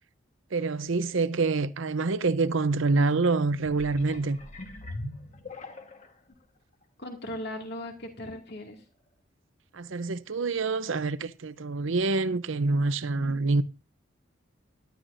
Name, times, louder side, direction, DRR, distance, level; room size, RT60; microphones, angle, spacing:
voice 1, 0.5-4.4 9.7-13.6, right 3 dB, 70° right, 0.7 m, -26 dB
sound 1, 3.6-6.2 6.8-6.9, left 2 dB, 35° left, 1.4 m, -41 dB
voice 2, 7.0-8.8 13.2-13.4, left 1 dB, 55° left, 2.2 m, -38 dB
17.0 x 12.0 x 2.6 m
head